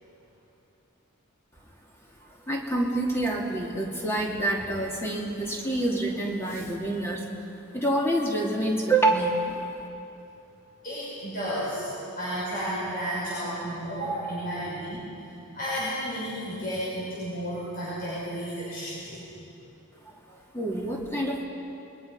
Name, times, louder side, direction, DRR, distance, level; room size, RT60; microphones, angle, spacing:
voice 1, 2.5-7.3 7.7-9.7 20.3-21.4, right 2 dB, 10° left, -1 dB, 2.4 m, -27 dB
voice 2, 10.8-11.9 12.2-15.0 15.5-19.2, equal, 40° left, -9 dB, 5.7 m, -32 dB
28.0 x 21.5 x 5.5 m, 2.8 s
head